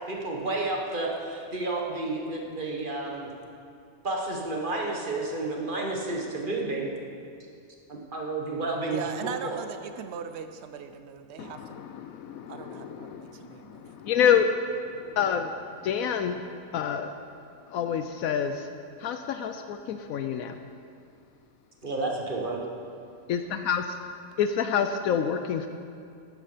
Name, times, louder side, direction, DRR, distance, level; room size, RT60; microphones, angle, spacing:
voice 1, 0.1-3.3 4.0-6.9 7.9-9.6 21.8-22.6, right 2 dB, 35° right, -1 dB, 1.5 m, -31 dB
voice 2, 8.9-11.8 12.5-13.8, right 7 dB, 55° right, 9 dB, 0.9 m, -39 dB
voice 3, 11.4-13.8 14.1-14.5 14.9-16.4 16.7-17.1 17.7-18.7 19.0-20.6 23.3-23.9 24.4-25.7, left 8 dB, 75° left, 8 dB, 1.0 m, -28 dB
12.0 x 10.0 x 5.0 m, 2.4 s
omnidirectional pair, 1.5 m